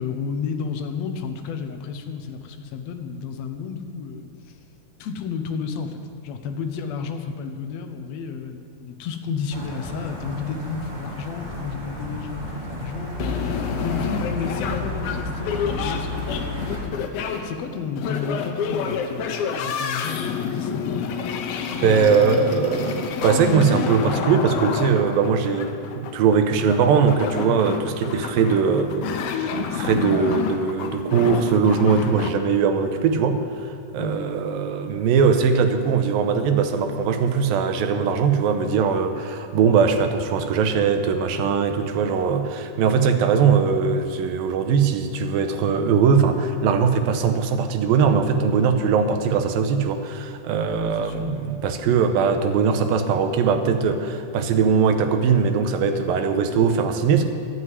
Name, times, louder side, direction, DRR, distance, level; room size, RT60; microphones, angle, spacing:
voice 1, 0.0-4.3 5.0-13.2 13.8-21.1 21.8-22.7 34.0-34.2 50.7-51.3, left 6 dB, 70° left, 6 dB, 1.7 m, -32 dB
sound 1, 9.5-16.8, left 2 dB, 40° right, 0.6 m, -32 dB
sound 2, 13.2-32.3, left 6 dB, 85° left, 2.7 m, -29 dB
voice 2, 21.8-57.2, right 6 dB, 85° right, 7 dB, 2.6 m, -20 dB
12.5 x 7.8 x 9.4 m, 2.3 s
omnidirectional pair, 4.1 m